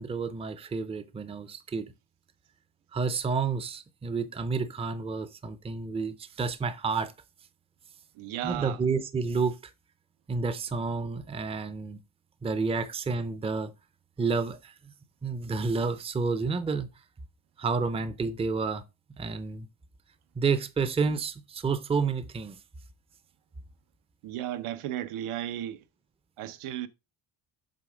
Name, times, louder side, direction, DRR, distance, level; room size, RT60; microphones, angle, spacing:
voice 1, 0.0-1.9 2.9-7.1 8.4-9.5 10.3-12.0 12.4-13.7 14.2-14.7 15.2-16.9 17.6-18.8 19.2-19.7 20.4-22.5, right 4 dB, 15° right, 0.5 m, -30 dB
voice 2, 8.2-8.8 24.2-25.8 26.4-26.9, right 12 dB, 85° right, 0.9 m, -34 dB
7.6 x 3.4 x 4.9 m
cardioid pair, 145°, 49 cm